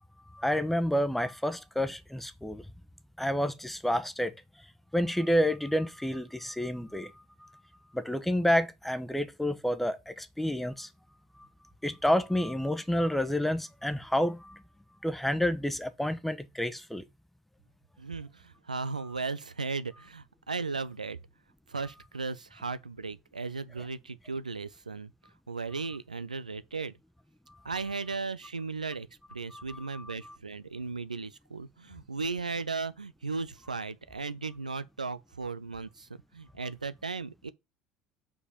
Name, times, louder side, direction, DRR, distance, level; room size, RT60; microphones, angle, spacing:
voice 1, 0.3-2.7 3.2-4.3 4.9-7.5 7.9-10.9 11.8-14.6 15.0-17.0 29.5-30.3, equal, 5° left, 1.0 m, -29 dB
voice 2, 18.0-21.2 21.7-25.1 25.5-26.9 27.6-37.5, right 4 dB, 90° right, 0.4 m, -36 dB
4.9 x 4.9 x 5.1 m
figure-of-eight pair, 65°, 4 cm